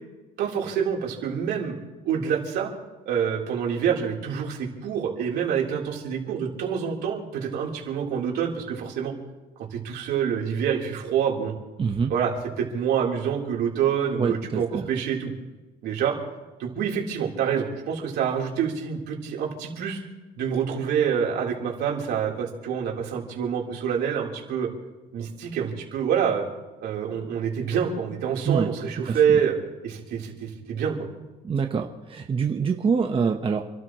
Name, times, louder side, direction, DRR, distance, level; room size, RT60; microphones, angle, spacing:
voice 1, 0.4-1.8 2.0-2.7 3.1-9.1 9.7-11.5 12.1-15.3 15.8-16.2 16.6-20.0 20.4-24.7 25.1-26.4 26.8-29.6 29.8-31.0, right 8 dB, 75° right, -1 dB, 3.8 m, -26 dB
voice 2, 11.8-12.1 14.2-14.9 28.5-28.7 29.1-29.4 31.4-33.6, right 5 dB, 35° right, 3 dB, 1.1 m, -25 dB
29.0 x 13.0 x 3.1 m, 1.2 s
cardioid pair, 110°, 17 cm